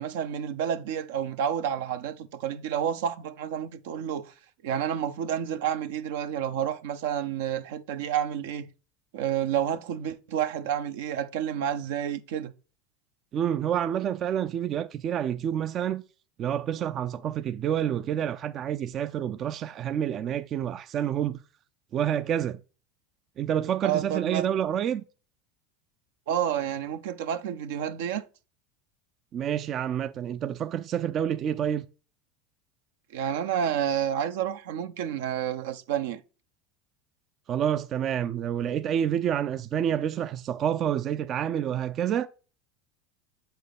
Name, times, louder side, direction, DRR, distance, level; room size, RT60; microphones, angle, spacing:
voice 1, 0.0-4.3 4.6-8.7 9.1-12.5 23.8-24.5 26.3-28.2 33.1-36.2, right 9 dB, 75° right, 0.7 m, -30 dB
voice 2, 13.3-16.0 16.4-21.4 21.9-22.6 23.4-25.0 29.3-31.9 37.5-42.3, right 9 dB, 45° right, 0.4 m, -28 dB
7.8 x 4.5 x 5.1 m
hypercardioid pair, 95°, 0 cm